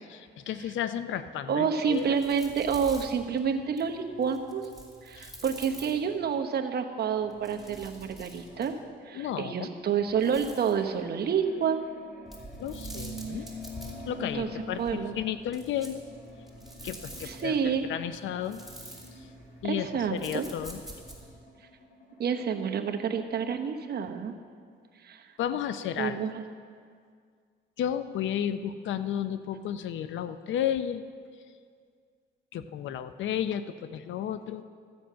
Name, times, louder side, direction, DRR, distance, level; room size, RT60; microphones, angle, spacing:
voice 1, 0.1-2.1 5.2-5.4 9.1-9.7 12.6-13.5 14.1-16.0 16.8-18.6 19.6-20.8 25.4-26.2 27.8-31.1 32.5-34.6, left 9 dB, 75° left, 12 dB, 0.6 m, -33 dB
voice 2, 1.5-4.7 5.0-8.8 9.0-11.8 14.1-14.5 14.8-15.2 17.2-17.9 19.6-20.5 22.2-24.3 25.0-25.2 26.0-26.4, right 7 dB, 55° right, 5 dB, 1.0 m, -29 dB
sound 1, 1.9-6.3 7.2-8.9 10.0-10.8 12.3-21.4, right 1 dB, ahead, 2.8 m, -47 dB
sound 2, 5.6-15.3 15.8-23.6, left 1 dB, 55° left, 2.5 m, -47 dB
13.5 x 7.9 x 5.7 m, 2.1 s
cardioid pair, 90°, 20 cm